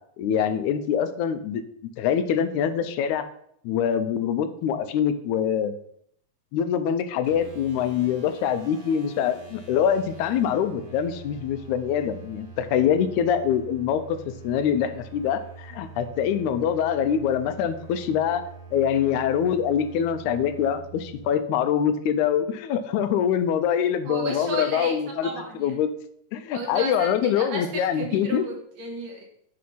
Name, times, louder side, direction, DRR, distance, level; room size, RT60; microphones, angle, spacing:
voice 1, 0.2-1.6 2.0-3.3 3.6-5.8 6.5-18.5 18.7-25.3 25.6-25.9 26.3-28.5, left 8 dB, 85° left, 10 dB, 2.0 m, -24 dB
sound 1, 7.2-21.3, right 4 dB, 40° right, 1.6 m, -45 dB
voice 2, 24.0-24.9 25.2-25.7 26.5-29.2, right 2 dB, 65° right, 1 dB, 2.3 m, -33 dB
7.7 x 3.4 x 5.5 m, 0.68 s
omnidirectional pair, 3.4 m